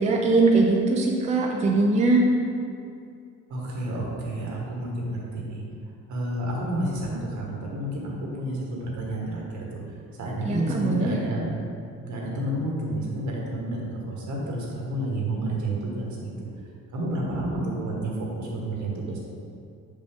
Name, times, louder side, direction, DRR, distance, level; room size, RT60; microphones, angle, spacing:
voice 1, 0.0-2.2 10.4-11.1, right 3 dB, 25° right, -1 dB, 0.5 m, -21 dB
voice 2, 3.5-5.6 6.1-9.8 10.2-11.5 12.0-16.5 16.9-19.3, right 1 dB, 70° right, -3 dB, 1.5 m, -30 dB
6.2 x 5.2 x 3.6 m, 2.4 s
cardioid pair, 155°, 30 cm